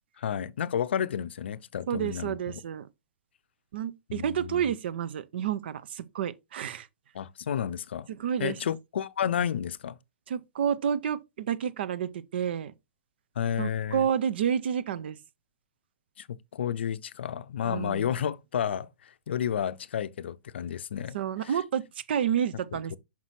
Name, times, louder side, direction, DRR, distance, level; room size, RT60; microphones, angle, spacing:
voice 1, 0.2-2.6 4.1-4.7 7.1-8.1 8.4-10.0 13.4-14.1 16.2-21.2 21.4-21.6 22.9-23.0, left 9 dB, 70° left, 0.5 m, -31 dB
voice 2, 1.9-2.9 3.7-6.9 8.1-8.6 10.3-12.7 13.6-15.2 17.6-18.1 21.1-23.0, right 8 dB, 65° right, 0.6 m, -30 dB
5.9 x 5.6 x 3.1 m
hypercardioid pair, 120°, 6 cm